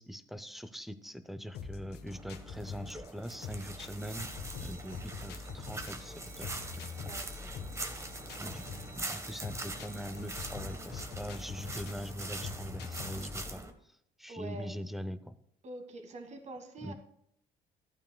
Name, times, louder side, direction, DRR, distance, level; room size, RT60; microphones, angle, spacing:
voice 1, 0.0-4.3 4.6-6.5 8.4-8.6 8.9-13.6 14.2-15.4 16.8-16.9, equal, ahead, 12 dB, 0.6 m, -42 dB
sound 1, 1.5-13.6, left 5 dB, 75° left, 1.1 m, -45 dB
sound 2, 2.1-13.7, right 2 dB, 15° right, 1.2 m, -43 dB
sound 3, 4.0-10.8, right 3 dB, 70° right, 3.1 m, -56 dB
voice 2, 7.0-7.5 14.3-14.7 15.6-16.9, right 2 dB, 45° right, 6 dB, 1.5 m, -45 dB
14.5 x 8.9 x 2.2 m, 0.73 s
cardioid pair, 110°, 17 cm